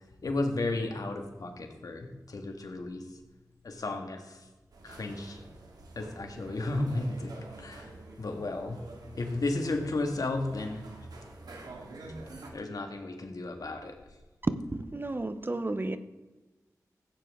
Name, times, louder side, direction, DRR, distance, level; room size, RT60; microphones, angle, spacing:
voice 1, 0.2-3.0 3.6-4.4 4.8-5.4 6.0-7.3 7.6-8.8 9.2-10.8 12.5-14.0, left 2 dB, 70° left, 4 dB, 1.9 m, -33 dB
sound 1, 4.7-12.5, right 2 dB, 85° right, 2.0 m, -47 dB
voice 2, 14.4-16.0, right 2 dB, 35° right, 11 dB, 0.8 m, -32 dB
15.0 x 9.2 x 3.7 m, 1.2 s
cardioid pair, 50°, 7 cm